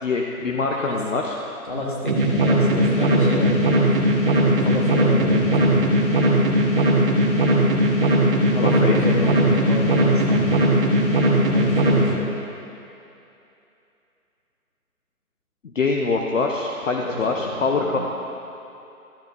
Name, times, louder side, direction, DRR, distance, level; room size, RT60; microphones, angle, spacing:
voice 1, 0.0-1.3 8.6-9.0 15.7-18.0, left 4 dB, 55° left, 1 dB, 0.7 m, -24 dB
voice 2, 1.6-3.6 3.9-4.0 4.3-5.8 8.5-10.6 11.5-12.2 17.0-18.0, left 1 dB, 35° left, -3 dB, 1.3 m, -29 dB
sound 1, 2.1-12.0, right 1 dB, 35° right, 1.4 m, -19 dB
13.0 x 10.5 x 2.7 m, 2.8 s
hypercardioid pair, 180°, 45 cm